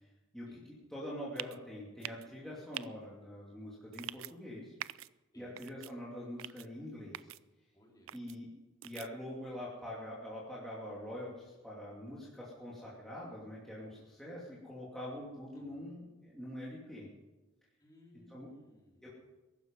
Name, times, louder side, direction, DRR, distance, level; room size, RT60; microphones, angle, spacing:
voice 1, 0.9-4.7 5.4-7.3 8.1-8.5 8.8-17.1 18.1-18.5 19.0-19.1, left 1 dB, ahead, -7 dB, 2.7 m, -44 dB
sound 1, 1.4-1.6 2.0-2.3 2.7-2.9 3.9-4.3 4.8-5.1 5.6-5.9 6.4-6.7 7.1-7.4 8.1-8.3 8.8-9.1, right 13 dB, 75° right, 0.4 m, -43 dB
voice 2, 5.3-5.6 7.7-8.1 15.6-15.8 17.8-19.1, left 1 dB, 20° left, -1 dB, 3.5 m, -61 dB
22.0 x 12.5 x 5.4 m, 1.1 s
head